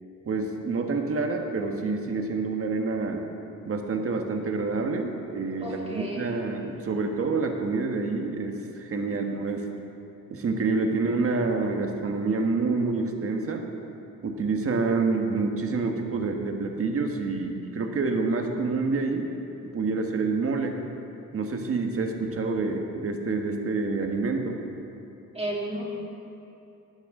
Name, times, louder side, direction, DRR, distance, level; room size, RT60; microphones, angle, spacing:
voice 1, 0.2-3.2 3.6-9.7 10.3-13.7 14.2-19.3 19.6-20.8 21.3-24.6, right 3 dB, 45° right, 3 dB, 1.4 m, -27 dB
voice 2, 5.6-6.4 9.1-9.2 25.3-25.8, right 1 dB, 20° right, -4 dB, 3.0 m, -33 dB
18.5 x 12.5 x 3.8 m, 2.8 s
cardioid pair, 115°, 31 cm